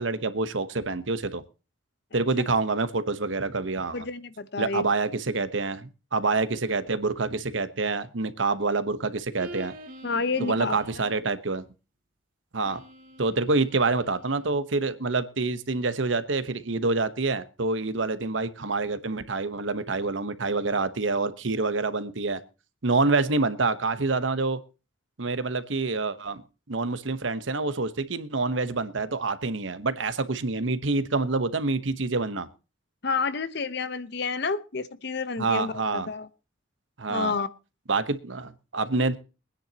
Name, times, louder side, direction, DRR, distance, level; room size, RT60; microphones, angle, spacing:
voice 1, 0.0-1.4 2.1-4.0 4.6-9.7 10.4-11.7 12.5-12.8 13.2-22.4 22.8-24.6 25.2-26.4 26.7-32.5 35.4-36.1 37.0-37.3 37.9-39.2, right 3 dB, 75° right, 1.1 m, -27 dB
voice 2, 3.9-4.9 10.0-10.8 33.0-36.3 37.1-37.5, left 4 dB, 60° left, 0.9 m, -29 dB
sound 1, 9.4-11.3 12.6-14.5, right 1 dB, 50° right, 2.4 m, -46 dB
22.5 x 10.0 x 2.9 m
head